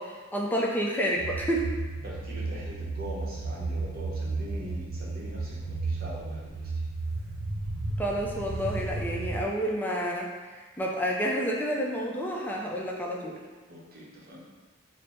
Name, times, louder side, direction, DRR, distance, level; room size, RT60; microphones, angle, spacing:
voice 1, 0.0-1.7 8.0-13.4, equal, 10° left, -2 dB, 0.4 m, -30 dB
sound 1, 1.2-9.4, right 3 dB, 85° right, 0.5 m, -33 dB
voice 2, 2.0-6.7 13.7-14.4, equal, 50° right, -5 dB, 0.8 m, -42 dB
3.3 x 2.0 x 4.2 m, 1.3 s
head